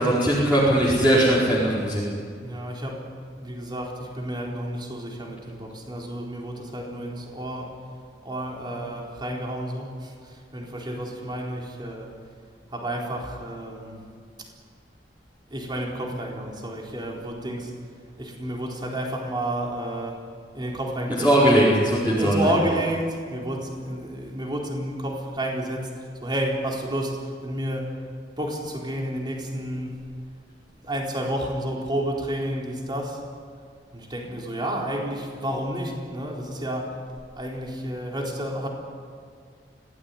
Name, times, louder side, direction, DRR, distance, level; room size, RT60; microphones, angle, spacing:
voice 1, 0.0-2.0 21.2-22.5, right 1 dB, 10° right, -9 dB, 4.8 m, -19 dB
voice 2, 2.4-3.1 3.4-7.8 8.2-12.2 12.7-14.0 14.4-14.5 15.5-17.7 18.2-20.3 20.5-21.6 22.2-28.0 28.4-30.0 30.8-33.2 33.9-37.0 37.4-38.7, right 1 dB, 25° right, -1 dB, 4.2 m, -31 dB
25.5 x 17.5 x 9.8 m, 2.1 s
head